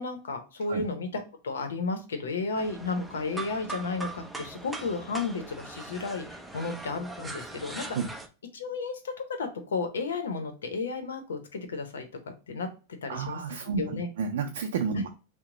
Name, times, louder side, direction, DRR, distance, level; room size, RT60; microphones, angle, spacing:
voice 1, 0.0-8.0 8.5-14.1 15.0-15.1, left 4 dB, 90° left, 7 dB, 0.7 m, -33 dB
sound 1, 2.6-8.3, right 3 dB, 5° right, 0.4 m, -41 dB
voice 2, 13.1-15.1, right 5 dB, 75° right, 3 dB, 0.4 m, -31 dB
2.9 x 2.1 x 3.7 m, 0.32 s
hypercardioid pair, 115°, 0 cm